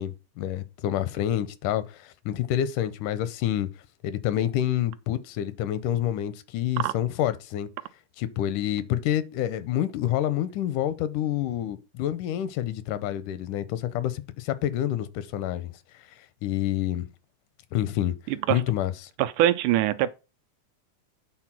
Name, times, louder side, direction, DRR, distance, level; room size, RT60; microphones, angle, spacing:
voice 1, 0.0-3.7 4.0-7.7 8.2-15.7 16.4-17.1 17.7-18.2 18.5-19.1, left 12 dB, 85° left, 2.2 m, -28 dB
voice 2, 18.3-18.6 19.2-20.1, right 13 dB, 80° right, 2.0 m, -23 dB
8.9 x 3.9 x 6.0 m
omnidirectional pair, 3.7 m